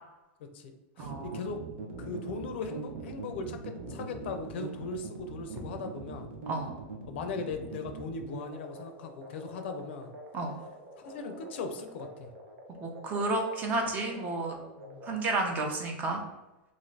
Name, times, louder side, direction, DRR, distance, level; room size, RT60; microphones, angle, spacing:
voice 1, 0.4-1.6 2.0-6.3 7.1-10.1 11.0-12.3 14.8-15.1, left 4 dB, 75° left, 6 dB, 0.4 m, -39 dB
voice 2, 1.0-1.4 6.5-6.7 10.3-10.5 12.8-14.6 15.1-16.2, right 2 dB, 25° right, 1 dB, 0.6 m, -31 dB
sound 1, 1.0-15.8, right 3 dB, 85° right, 0.7 m, -43 dB
2.5 x 2.5 x 3.2 m, 1.0 s
supercardioid pair, 140°, 6 cm